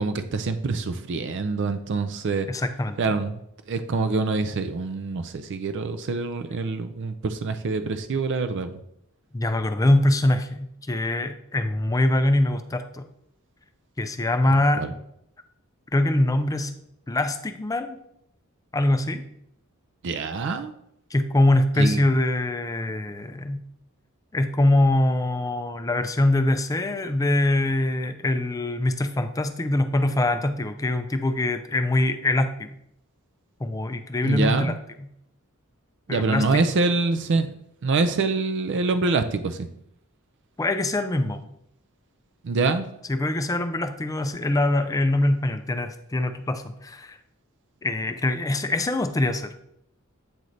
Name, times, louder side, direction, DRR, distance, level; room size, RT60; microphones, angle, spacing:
voice 1, 0.0-2.5 3.0-3.3 3.7-8.8 14.7-14.9 20.0-20.7 21.8-22.0 34.2-34.8 36.1-37.5 37.8-39.7 42.4-42.9, right 3 dB, 55° right, 9 dB, 0.4 m, -25 dB
voice 2, 2.5-3.0 9.3-13.1 14.0-14.9 15.9-16.7 17.1-18.0 18.7-19.2 21.1-23.6 24.3-32.7 33.6-35.1 36.1-36.7 40.6-41.4 43.1-47.2 47.8-49.5, left 1 dB, 15° left, 9 dB, 0.4 m, -23 dB
8.7 x 3.2 x 3.9 m, 0.74 s
head